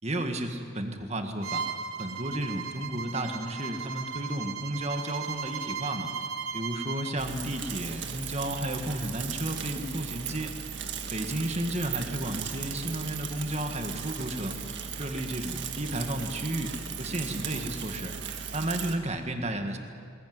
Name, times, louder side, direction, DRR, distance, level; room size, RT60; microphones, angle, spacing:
voice 1, 0.0-1.6 2.0-6.1 6.5-10.5 11.1-14.5 14.9-18.1 18.5-19.8, right 1 dB, 30° right, 5 dB, 1.7 m, -33 dB
Bowed string instrument, 1.4-7.2, right 6 dB, 80° right, 1.2 m, -36 dB
Bicycle / Mechanisms, 7.2-19.0, right 6 dB, 55° right, 1.8 m, -37 dB
20.5 x 20.0 x 9.5 m, 2.3 s
head